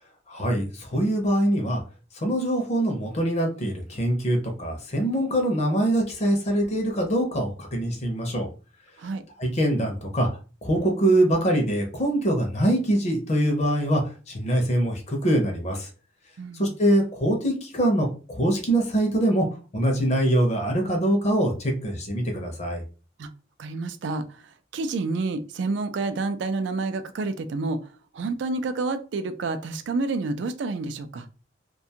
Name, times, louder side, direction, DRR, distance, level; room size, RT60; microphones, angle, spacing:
voice 1, 0.3-1.8 2.1-8.5 9.4-10.3 10.6-15.9 16.5-19.5 19.7-22.8, right 1 dB, 35° left, 2 dB, 0.6 m, -23 dB
voice 2, 16.4-16.7 23.2-23.3 23.6-31.3, right 3 dB, 70° right, 9 dB, 0.4 m, -29 dB
2.5 x 2.3 x 2.7 m, 0.35 s
head